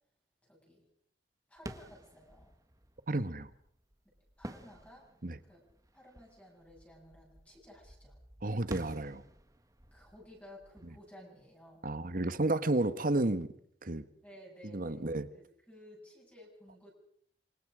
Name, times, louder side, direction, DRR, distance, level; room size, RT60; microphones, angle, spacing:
voice 1, 0.4-0.9 1.5-2.5 4.0-5.1 5.4-5.7 5.9-8.2 9.9-11.9 14.2-16.9, equal, 10° left, -2 dB, 7.6 m, -55 dB
sound 1, 1.6-12.2, right 1 dB, 20° right, 1.6 m, -51 dB
voice 2, 3.1-3.5 5.2-5.4 8.4-9.2 11.8-13.5 13.8-14.0 14.6-15.3, right 2 dB, 55° right, 13 dB, 1.4 m, -31 dB
28.0 x 25.0 x 5.1 m, 0.62 s
head